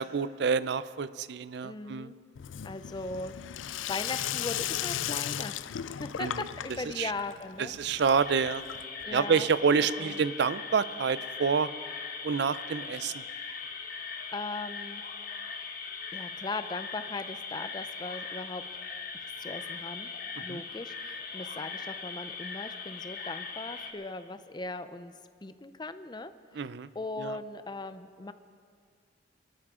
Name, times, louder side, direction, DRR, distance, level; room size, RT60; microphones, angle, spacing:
voice 1, 0.0-2.1 6.2-6.4 6.7-7.1 7.6-8.6 9.1-11.7 12.2-13.2 20.4-20.6 26.5-26.9 27.2-27.4, right 5 dB, 55° right, 16 dB, 0.4 m, -28 dB
voice 2, 1.6-2.1 2.6-3.3 3.9-5.6 6.0-7.7 9.0-9.5 9.8-10.2 14.3-15.0 16.1-18.6 19.1-20.1 20.4-25.1 25.4-26.3 27.0-28.3, left 3 dB, 20° left, 11 dB, 0.5 m, -38 dB
Sink (filling or washing), 2.3-9.1, left 11 dB, 75° left, 0.4 m, -36 dB
sound 1, 8.2-23.9, left 5 dB, 45° left, 1.3 m, -40 dB
22.5 x 13.0 x 3.7 m, 2.1 s
head